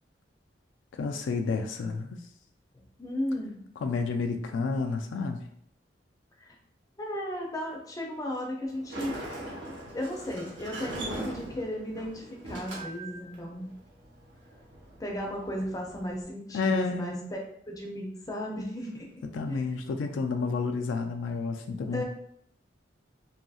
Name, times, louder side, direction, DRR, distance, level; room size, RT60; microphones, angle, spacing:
voice 1, 0.9-2.3 3.8-5.4 16.5-17.3 19.3-22.0, left 4 dB, 85° left, 5 dB, 0.3 m, -30 dB
voice 2, 3.0-3.6 6.4-6.6 7.0-9.1 9.9-13.7 15.0-17.4 17.7-19.8 21.9-22.0, equal, 20° left, -1 dB, 0.5 m, -35 dB
Sliding door, 8.7-16.2, right 1 dB, 70° right, 0.8 m, -41 dB
2.7 x 2.6 x 2.3 m, 0.68 s
head